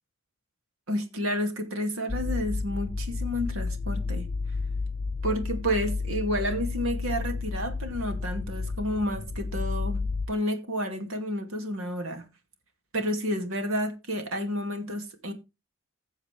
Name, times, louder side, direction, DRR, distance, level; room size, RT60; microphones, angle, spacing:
voice 1, 0.9-4.3 5.2-12.3 12.9-15.3, equal, 85° right, 2.4 m, -30 dB
sound 1, 2.1-10.3, left 3 dB, 40° left, 0.7 m, -31 dB
16.0 x 7.2 x 3.3 m
head